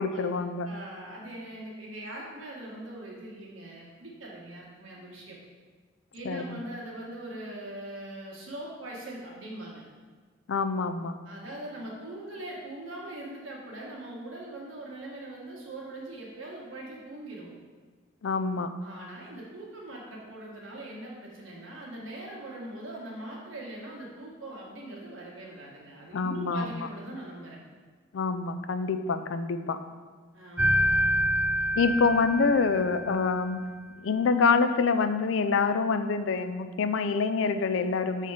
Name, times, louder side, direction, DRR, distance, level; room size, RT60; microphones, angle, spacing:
voice 1, 0.0-0.7 6.2-6.6 10.5-11.1 18.2-18.7 26.1-26.9 28.1-29.8 31.8-33.6 34.0-38.3, left 4 dB, 70° left, 10 dB, 0.4 m, -26 dB
voice 2, 0.6-5.4 6.1-9.8 11.2-17.5 18.8-27.6 30.3-31.0, right 1 dB, 80° right, -3 dB, 1.7 m, -41 dB
sound 1, 30.6-33.5, equal, 10° right, 0.4 m, -27 dB
7.0 x 4.1 x 4.9 m, 1.4 s
head